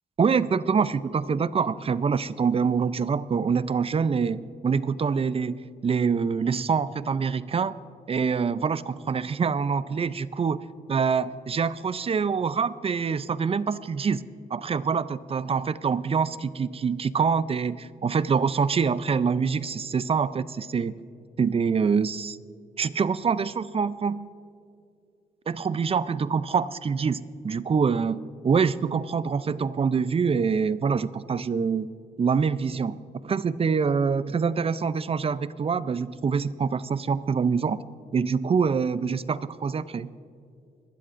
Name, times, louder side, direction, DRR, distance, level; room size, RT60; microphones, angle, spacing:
voice 1, 0.2-7.7 8.1-10.6 10.9-14.2 14.5-20.9 21.4-22.4 22.8-24.3 25.5-31.9 32.2-33.0 33.2-37.8 38.1-40.1, right 5 dB, 35° right, 16 dB, 0.5 m, -25 dB
22.5 x 12.5 x 2.6 m, 2.3 s
cardioid pair, 70°, 16 cm